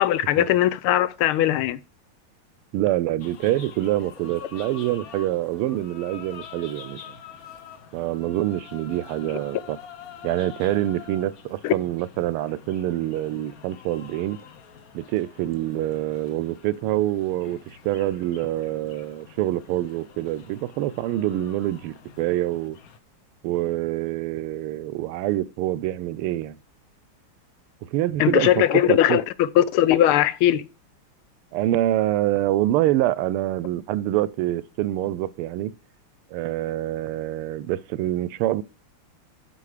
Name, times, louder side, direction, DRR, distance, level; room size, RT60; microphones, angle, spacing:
voice 1, 0.0-1.8 11.6-11.7 28.2-30.7, left 12 dB, 80° left, 1.5 m, -19 dB
voice 2, 2.7-7.0 7.9-9.8 10.2-14.4 14.9-22.8 23.4-26.6 27.8-28.6 28.9-29.2 31.5-35.7 36.3-38.6, right 14 dB, 85° right, 1.5 m, -26 dB
sound 1, 3.2-23.0, left 8 dB, 55° left, 1.1 m, -46 dB
8.4 x 5.7 x 4.9 m
omnidirectional pair, 2.4 m